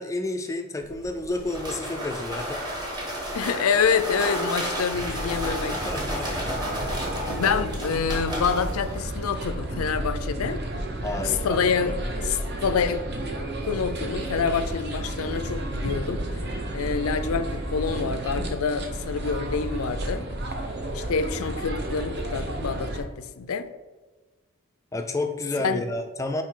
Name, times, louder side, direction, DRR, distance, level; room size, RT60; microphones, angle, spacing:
voice 1, 0.0-2.6 5.7-6.5 11.0-11.6 24.9-26.4, left 2 dB, 15° left, 0.3 m, -30 dB
sound 1, 0.8-9.5, equal, 20° right, 1.1 m, -32 dB
voice 2, 3.3-5.8 7.3-10.6 11.2-13.0 13.6-20.3 20.9-23.7 25.6-25.8, left 6 dB, 85° left, 0.5 m, -27 dB
sound 2, 4.9-23.0, right 1 dB, 50° right, 0.9 m, -32 dB
7.4 x 4.8 x 3.7 m
head